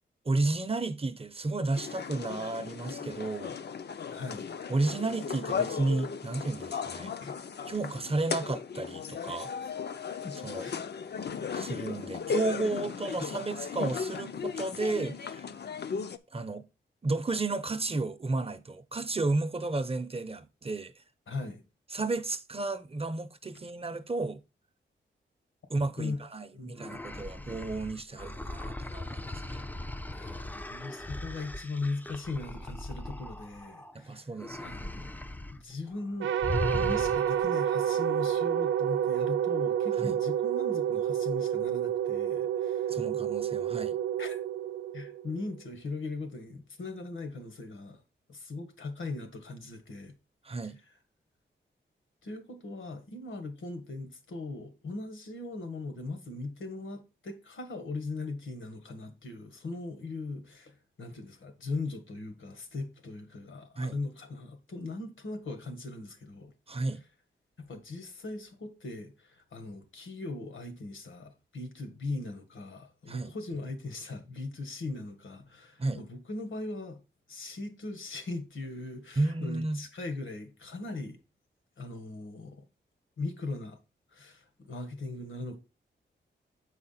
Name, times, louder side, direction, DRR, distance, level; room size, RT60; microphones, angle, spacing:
voice 1, 0.2-3.5 4.7-7.1 7.7-9.5 10.4-10.7 11.5-15.5 16.3-16.7 17.0-20.9 21.9-24.4 25.7-29.7 33.9-34.8 40.0-40.1 42.9-44.0 50.4-50.8 63.7-64.0 66.7-67.0 73.1-73.3 75.8-76.0 79.2-79.8, right 2 dB, 30° right, 0.7 m, -32 dB
sound 1, 1.7-16.2, left 6 dB, 60° left, 0.6 m, -36 dB
voice 2, 4.1-4.5 6.9-7.4 9.6-9.7 10.2-10.8 21.3-21.6 26.0-26.2 26.5-27.0 30.1-34.3 34.6-35.2 35.5-36.3 36.7-43.0 44.2-44.4 44.9-48.0 48.3-50.1 52.2-66.5 67.6-77.0 77.3-81.2 81.8-82.6 83.2-83.8 84.1-85.6, left 3 dB, 80° left, 1.7 m, -39 dB
sound 2, 26.8-33.9 34.4-35.6 35.9-36.1 36.4-37.5, left 2 dB, 10° left, 0.5 m, -38 dB
sound 3, 36.2-45.5, right 10 dB, 80° right, 0.4 m, -29 dB
7.4 x 4.9 x 4.2 m
wide cardioid pair, 100°, 20 cm